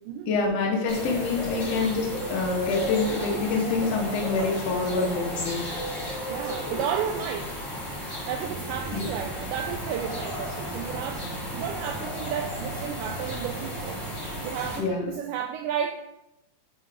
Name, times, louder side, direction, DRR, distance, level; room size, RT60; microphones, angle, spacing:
voice 1, 0.3-5.6 8.9-9.0 14.8-15.1, left 4 dB, 70° left, -1 dB, 1.5 m, -26 dB
sound 1, 0.9-14.8, left 1 dB, 25° left, 1.8 m, -33 dB
voice 2, 6.2-7.6 8.3-14.0 14.4-15.9, right 8 dB, 90° right, 4 dB, 2.2 m, -32 dB
sound 2, 8.4-14.5, right 4 dB, 60° right, 2.0 m, -41 dB
8.1 x 3.9 x 4.7 m, 0.88 s
omnidirectional pair, 5.0 m